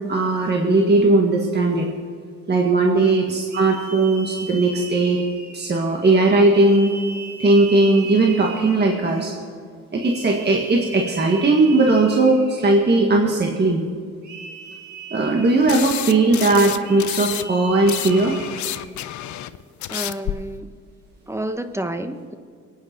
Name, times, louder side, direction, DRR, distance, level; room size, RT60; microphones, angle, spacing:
voice 1, 0.0-1.9 2.5-5.2 5.5-6.9 7.4-9.3 9.9-13.8 15.1-18.4, right 2 dB, 35° right, 1 dB, 1.7 m, -18 dB
sound 1, 2.6-2.8 3.5-5.9 6.5-9.2 10.0-12.8 14.2-16.1 16.8-18.9, right 3 dB, 75° right, 3.0 m, -38 dB
voice 2, 3.0-3.4 19.9-20.7 21.3-22.4, right 1 dB, 10° right, 9 dB, 1.1 m, -29 dB
sound 2, 15.7-17.4 17.7-20.3, left 13 dB, 70° left, 0.7 m, -29 dB
23.5 x 9.5 x 4.4 m, 2.2 s
cardioid pair, 90°, 30 cm